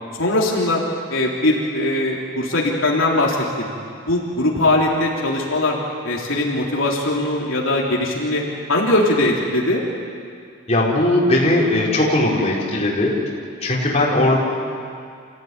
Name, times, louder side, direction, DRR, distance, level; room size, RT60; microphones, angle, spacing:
voice 1, 0.2-0.8 1.1-3.7 4.0-5.8 6.0-8.4 8.7-9.8, left 1 dB, 75° left, -3 dB, 3.5 m, -20 dB
voice 2, 10.7-13.1 13.6-14.4, left 1 dB, 30° left, -5 dB, 4.7 m, -18 dB
28.0 x 16.5 x 9.6 m, 2.3 s
head